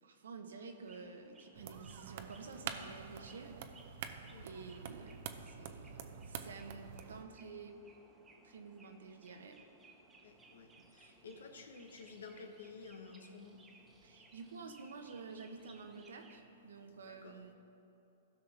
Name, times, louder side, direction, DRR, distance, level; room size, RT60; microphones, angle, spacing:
voice 1, 0.0-3.5 4.0-4.1 4.4-7.8 8.4-9.6 14.0-17.5, right 4 dB, 80° right, 5 dB, 1.0 m, -50 dB
sound 1, 0.7-16.4, right 3 dB, 15° right, 1.2 m, -63 dB
sound 2, 1.6-7.2, right 7 dB, 55° right, 0.6 m, -47 dB
voice 2, 10.2-14.3 16.9-17.4, left 4 dB, 80° left, 5 dB, 1.1 m, -53 dB
16.0 x 5.8 x 3.4 m, 2.7 s
hypercardioid pair, 125°, 0 cm